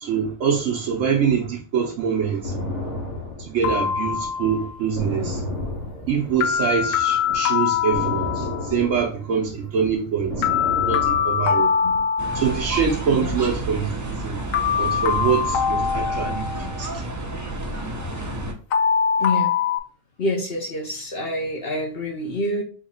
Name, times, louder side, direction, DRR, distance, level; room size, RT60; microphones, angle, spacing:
voice 1, 0.0-2.5 3.4-5.4 6.1-10.4 10.9-11.7 12.3-14.4 14.8-17.0, right 6 dB, 75° right, 1.1 m, -24 dB
sound 1, 2.4-6.8 7.1-12.0, left 1 dB, 35° left, 1.2 m, -31 dB
sound 2, 3.6-4.8 6.4-8.7 10.4-12.7 14.5-16.9 18.7-19.8, left 7 dB, 80° left, 1.0 m, -23 dB
sound 3, 12.2-18.5, right 1 dB, 20° right, 0.6 m, -30 dB
voice 2, 19.2-19.5 20.2-22.6, left 1 dB, 55° left, 1.0 m, -27 dB
4.0 x 2.9 x 4.2 m
omnidirectional pair, 1.4 m